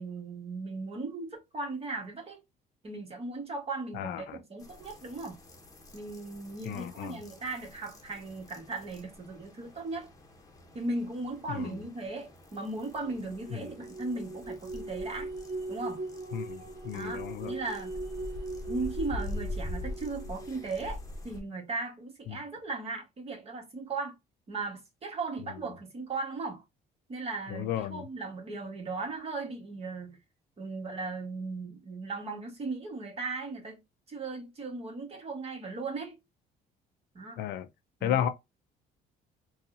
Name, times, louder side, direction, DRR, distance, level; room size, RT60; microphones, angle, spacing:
voice 1, 0.0-2.4 2.8-5.4 5.9-10.1 10.7-15.3 15.7-16.0 16.9-17.9 18.7-21.0 21.2-24.1 24.5-26.6 27.1-30.2 30.6-33.8 34.1-36.2 37.1-37.4 38.0-38.3, right 3 dB, 35° right, 1.5 m, -37 dB
voice 2, 3.9-4.4 6.6-7.2 11.5-11.8 13.5-13.6 16.3-17.5 22.3-22.4 27.5-28.0 37.4-37.7 38.0-38.3, left 10 dB, 75° left, 0.5 m, -33 dB
sound 1, 4.6-21.4, left 2 dB, 20° left, 0.9 m, -44 dB
sound 2, 13.0-20.9, right 2 dB, 50° right, 1.2 m, -40 dB
3.9 x 2.4 x 2.7 m
cardioid pair, 110°, 17 cm